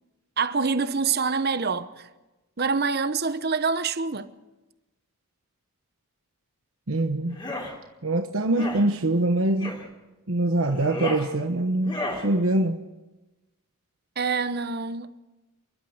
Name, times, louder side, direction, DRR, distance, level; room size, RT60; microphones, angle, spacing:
voice 1, 0.4-2.1 2.6-4.3 14.2-15.1, right 5 dB, 45° right, 0.9 m, -26 dB
voice 2, 6.9-7.4 8.0-9.7 10.3-12.0 12.2-12.8, right 2 dB, 65° right, 1.2 m, -23 dB
sound 1, 7.3-7.7 8.5-8.8 9.6-9.9 10.7-11.3 11.8-12.3, left 2 dB, 20° left, 3.4 m, -33 dB
29.5 x 12.0 x 8.0 m
head